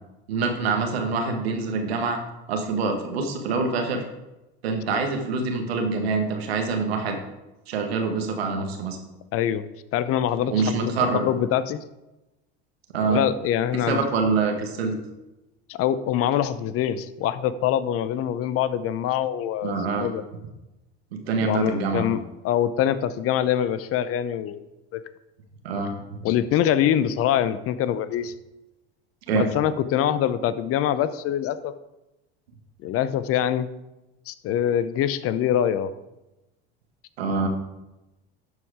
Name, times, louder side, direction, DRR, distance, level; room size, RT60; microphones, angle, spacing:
voice 1, 0.3-2.2 2.5-4.0 4.6-7.2 7.7-9.0 10.5-11.2 12.9-13.2 13.9-14.9 19.6-20.1 21.1-22.1 25.6-25.9 29.3-29.5 37.2-37.5, right 4 dB, 85° right, 4 dB, 1.6 m, -25 dB
voice 2, 9.3-9.6 9.9-11.8 13.0-14.1 15.7-20.2 21.4-22.2 22.4-24.6 24.9-25.0 26.2-28.3 29.3-31.8 32.8-33.7 34.3-35.9, left 10 dB, 50° left, 15 dB, 0.7 m, -24 dB
12.0 x 4.8 x 4.9 m, 0.99 s
hypercardioid pair, 85°, 30 cm